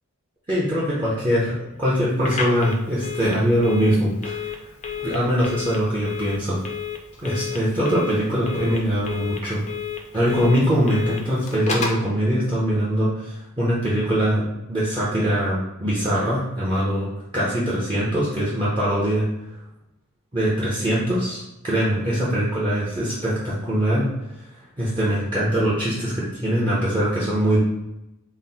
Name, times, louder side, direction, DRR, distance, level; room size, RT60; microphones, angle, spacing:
voice 1, 0.5-4.5 5.0-6.6 7.2-9.7 10.1-17.1 17.3-19.3 20.3-24.1 24.8-27.6, equal, 20° right, -8 dB, 0.6 m, -22 dB
Telephone, 2.2-12.1, left 6 dB, 30° left, 0.5 m, -32 dB
4.0 x 2.0 x 4.0 m, 0.91 s
head